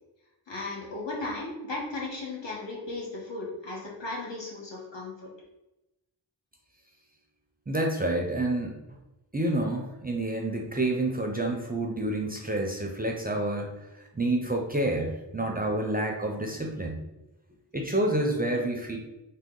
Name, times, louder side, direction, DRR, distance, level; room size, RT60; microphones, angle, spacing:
voice 1, 0.5-5.3, left 2 dB, 70° left, -4 dB, 1.2 m, -36 dB
voice 2, 7.7-8.8 9.3-13.7 14.1-17.0 17.7-19.0, right 1 dB, 20° right, 1 dB, 0.4 m, -28 dB
3.6 x 2.2 x 3.7 m, 0.97 s
wide cardioid pair, 70°, 45 cm